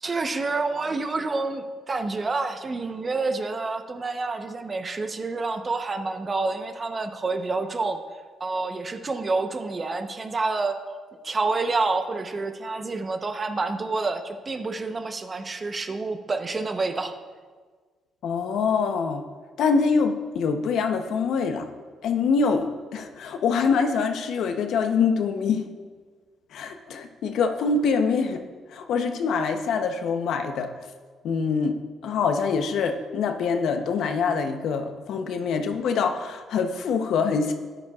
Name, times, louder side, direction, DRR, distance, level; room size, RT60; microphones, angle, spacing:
voice 1, 0.0-8.0 8.4-10.8 11.2-17.1, right 3 dB, 35° right, 7 dB, 0.8 m, -28 dB
voice 2, 18.2-19.2 19.6-21.7 22.0-25.6 26.5-28.4 28.7-30.7 31.2-31.8 32.0-37.5, left 5 dB, 75° left, 6 dB, 0.8 m, -24 dB
13.0 x 10.0 x 2.4 m, 1.5 s
cardioid pair, 90°, 0 cm